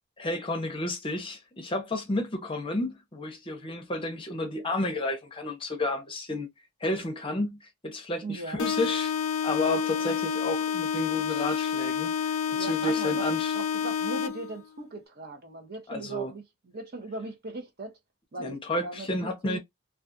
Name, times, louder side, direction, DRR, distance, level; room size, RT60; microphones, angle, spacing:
voice 1, 0.2-6.5 6.8-9.1 9.4-13.5 15.9-16.3 18.4-19.6, left 2 dB, 25° left, 0.6 m, -31 dB
voice 2, 8.2-8.7 10.0-10.1 12.5-13.2 13.5-18.0 18.3-19.6, right 2 dB, 45° right, 0.7 m, -39 dB
sound 1, 8.6-14.6, left 7 dB, 65° left, 0.4 m, -29 dB
2.4 x 2.3 x 2.5 m
head